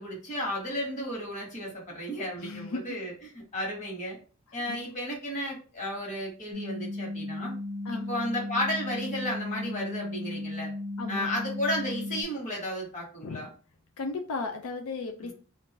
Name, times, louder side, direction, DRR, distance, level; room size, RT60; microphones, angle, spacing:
voice 1, 0.0-4.2 4.5-7.5 8.1-10.7 11.1-13.5 15.2-15.3, equal, 35° left, -2 dB, 1.4 m, -33 dB
voice 2, 2.4-2.9 4.7-4.8 7.9-8.1 11.0-11.3 13.2-13.5 14.0-15.3, left 3 dB, 85° left, 4 dB, 0.5 m, -35 dB
sound 1, 6.5-12.2, left 2 dB, 20° left, 0.9 m, -35 dB
2.6 x 2.5 x 3.6 m, 0.37 s
head